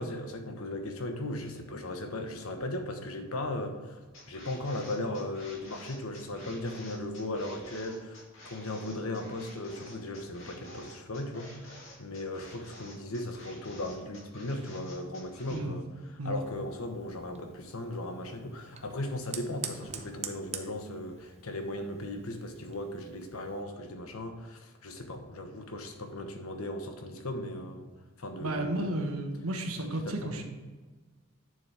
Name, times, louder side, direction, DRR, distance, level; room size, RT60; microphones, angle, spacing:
voice 1, 0.0-4.0 4.3-15.8 16.2-27.9 28.2-29.0 29.8-30.4, left 1 dB, 85° left, 5 dB, 1.2 m, -37 dB
sound 1, 4.1-15.6, left 1 dB, 65° left, 2.2 m, -50 dB
voice 2, 15.5-15.8 16.2-16.4 28.4-30.4, right 1 dB, 90° right, 3 dB, 1.4 m, -33 dB
Fire, 16.4-23.6, right 7 dB, 30° right, 0.8 m, -46 dB
10.5 x 6.9 x 3.5 m, 1.3 s
head